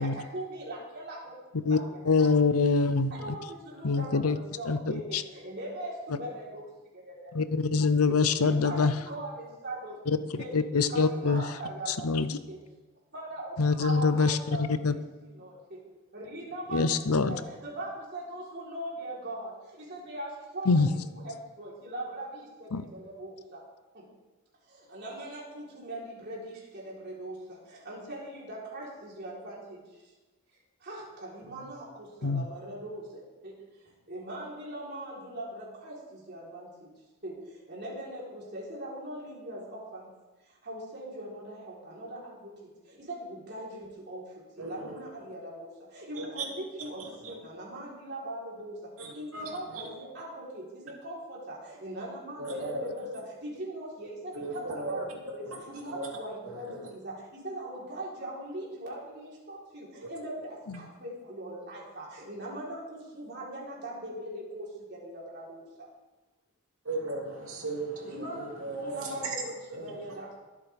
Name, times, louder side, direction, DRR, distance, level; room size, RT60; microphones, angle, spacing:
voice 1, 0.0-2.3 2.7-2.8 3.1-7.3 7.7-8.2 8.4-12.2 12.5-12.6 13.1-15.8 16.1-23.6 23.9-24.1 24.6-30.1 30.5-33.6 34.1-36.9 37.2-40.1 40.4-55.2 55.6-65.9 68.0-68.5 68.8-70.4, right 1 dB, 50° right, -5 dB, 4.1 m, -41 dB
voice 2, 2.1-3.1 3.8-4.4 4.7-4.8 5.1-5.2 7.3-8.9 10.1-10.2 10.5-11.4 12.0-12.3 13.6-14.4 14.8-14.9 16.7-17.4 20.7-20.9 22.7-22.8 32.2-32.5, left 4 dB, 85° left, 12 dB, 0.8 m, -24 dB
voice 3, 44.6-45.0 46.2-46.4 47.2-47.3 49.0-49.4 49.7-49.9 52.4-52.8 54.3-55.0 55.4-56.1 56.4-56.5 56.8-56.9 66.8-69.3 69.7-69.9, right 3 dB, 70° right, -1 dB, 2.8 m, -36 dB
24.0 x 8.6 x 3.6 m, 1.2 s
head